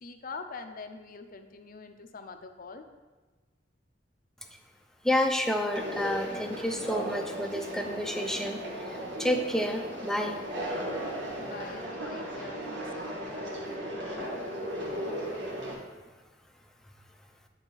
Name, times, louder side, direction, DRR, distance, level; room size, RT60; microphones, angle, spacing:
voice 1, 0.0-2.9 11.3-13.7, left 4 dB, 50° left, 7 dB, 0.5 m, -44 dB
voice 2, 5.0-10.4, left 1 dB, 5° left, 4 dB, 0.5 m, -30 dB
Conversation, 5.7-15.7, equal, 70° right, 1.6 m, -36 dB
9.7 x 4.0 x 3.9 m, 1.3 s
head